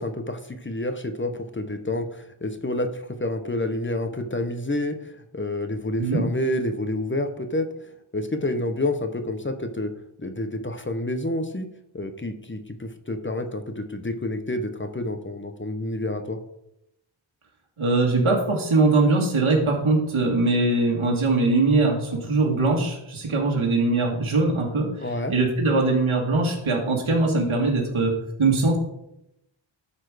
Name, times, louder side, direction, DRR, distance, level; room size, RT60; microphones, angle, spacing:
voice 1, 0.0-9.9 10.2-11.7 11.9-16.4 25.0-25.3, left 1 dB, 25° left, 8 dB, 0.9 m, -29 dB
voice 2, 17.8-28.1 28.4-28.8, right 3 dB, 80° right, -1 dB, 2.0 m, -21 dB
12.0 x 4.3 x 4.9 m, 0.82 s
wide cardioid pair, 90°, 49 cm